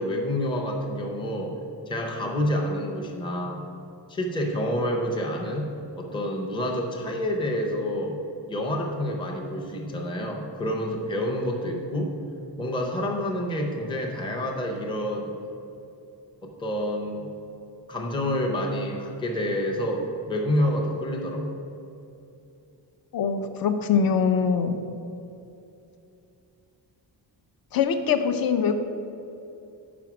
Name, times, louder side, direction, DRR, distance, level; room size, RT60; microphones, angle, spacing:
voice 1, 0.0-1.5 1.9-3.6 4.1-5.7 6.0-8.2 8.5-12.1 12.6-15.3 16.4-17.3 17.9-21.6, equal, 10° left, 0 dB, 0.5 m, -28 dB
voice 2, 23.1-24.8 27.7-28.8, left 6 dB, 55° left, 8 dB, 0.6 m, -23 dB
6.0 x 5.1 x 5.9 m, 2.8 s
wide cardioid pair, 175°, 43 cm